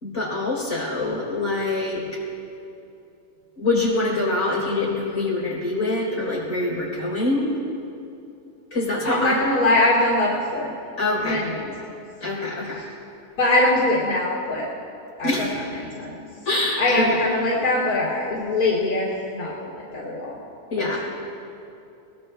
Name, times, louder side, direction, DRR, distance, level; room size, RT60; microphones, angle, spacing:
voice 1, 0.0-2.0 3.6-7.5 8.7-9.4 11.0-11.4 12.2-12.8 15.2-15.5 16.5-17.2 20.7-21.0, left 2 dB, 55° left, -4 dB, 4.2 m, -24 dB
voice 2, 9.0-10.7 11.2-11.9 12.6-12.8 13.4-14.7 15.2-16.2 16.8-19.5 19.9-20.4 20.7-21.0, left 2 dB, 80° left, -7 dB, 3.0 m, -23 dB
22.5 x 19.5 x 2.2 m, 2.8 s
omnidirectional pair, 1.7 m